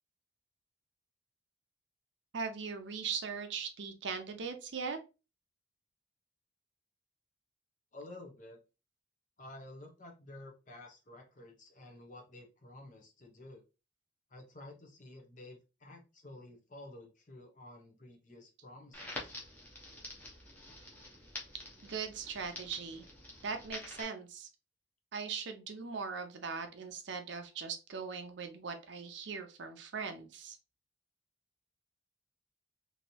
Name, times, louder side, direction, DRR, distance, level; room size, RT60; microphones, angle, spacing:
voice 1, 2.3-5.0 21.8-23.0 23.4-24.5 25.1-30.6, right 5 dB, 70° right, 7 dB, 0.6 m, -40 dB
voice 2, 7.9-8.6 9.4-13.6 14.3-19.3, left 2 dB, 40° left, 3 dB, 0.8 m, -52 dB
Crackle, 18.9-24.0, left 1 dB, 10° left, 0.8 m, -47 dB
3.0 x 2.7 x 2.7 m, 0.30 s
head